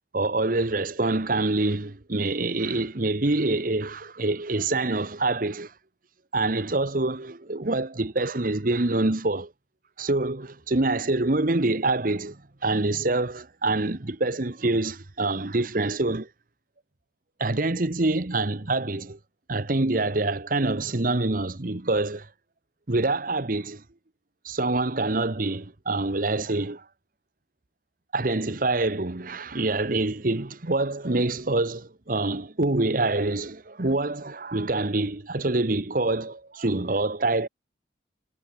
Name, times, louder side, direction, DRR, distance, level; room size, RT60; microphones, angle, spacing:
voice 1, 0.1-5.7 6.3-9.5 10.0-16.3 17.4-19.2 19.5-22.3 22.9-23.8 24.4-26.8 28.1-37.5, right 2 dB, 50° right, 1.2 m, -26 dB
head